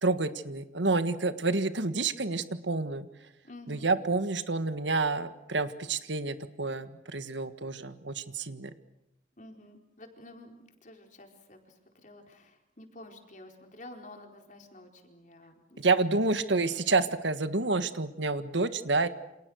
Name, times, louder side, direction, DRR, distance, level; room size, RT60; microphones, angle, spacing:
voice 1, 0.0-3.1 3.7-8.7 15.8-19.1, right 3 dB, 75° right, 11 dB, 1.7 m, -29 dB
voice 2, 3.4-3.9 9.4-10.5 10.8-16.0, left 1 dB, 45° left, 3 dB, 4.4 m, -50 dB
29.0 x 27.0 x 6.5 m, 0.89 s
head